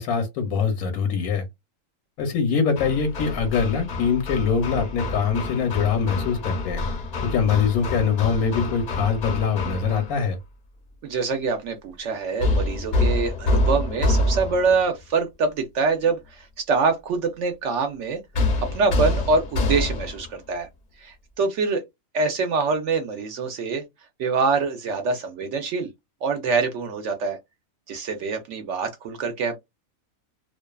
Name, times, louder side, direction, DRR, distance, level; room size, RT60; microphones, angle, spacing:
voice 1, 0.0-1.5 2.2-6.8 7.2-10.4, left 6 dB, 85° left, 1.1 m, -23 dB
Hammer, 2.8-10.2 12.4-14.8 18.3-20.3, left 2 dB, 50° left, 0.6 m, -26 dB
voice 2, 11.0-18.2 18.7-20.7 21.0-21.8 22.1-23.8 24.2-25.9 26.2-27.4 27.9-29.6, right 4 dB, 65° right, 0.8 m, -25 dB
2.5 x 2.3 x 2.2 m
omnidirectional pair, 1.5 m